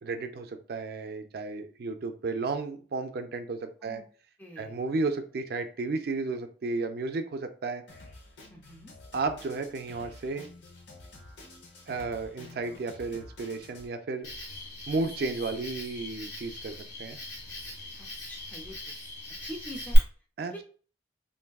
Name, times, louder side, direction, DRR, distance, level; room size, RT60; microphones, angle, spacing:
voice 1, 0.0-4.0 4.6-7.8 9.1-10.5 11.9-14.3 14.9-16.7 17.0-17.2 20.4-20.6, right 3 dB, 60° right, 7 dB, 0.4 m, -33 dB
voice 2, 4.4-4.8 8.5-8.9 18.0-18.9 19.4-20.0 20.5-20.6, equal, 10° left, 0 dB, 0.5 m, -44 dB
Drum kit, 7.9-13.9, left 2 dB, 85° left, 0.8 m, -49 dB
Cricket, 14.2-20.0, left 1 dB, 55° left, 1.6 m, -37 dB
3.4 x 2.6 x 2.3 m, 0.40 s
head